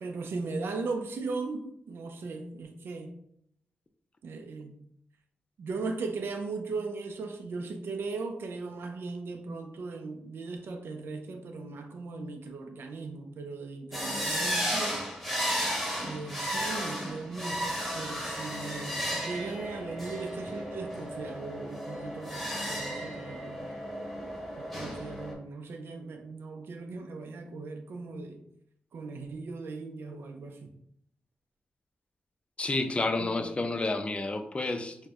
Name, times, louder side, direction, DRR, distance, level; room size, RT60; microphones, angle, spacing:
voice 1, 0.0-3.2 4.2-4.8 5.6-15.1 16.0-23.7 24.6-28.4 28.9-30.8 32.9-33.4, right 3 dB, 75° right, 5 dB, 0.4 m, -38 dB
sound 1, 13.9-25.3, equal, 5° right, 1.1 m, -34 dB
voice 2, 32.6-35.0, left 2 dB, 30° left, 7 dB, 0.4 m, -30 dB
4.2 x 2.1 x 2.4 m, 0.72 s
cardioid pair, 70°, 4 cm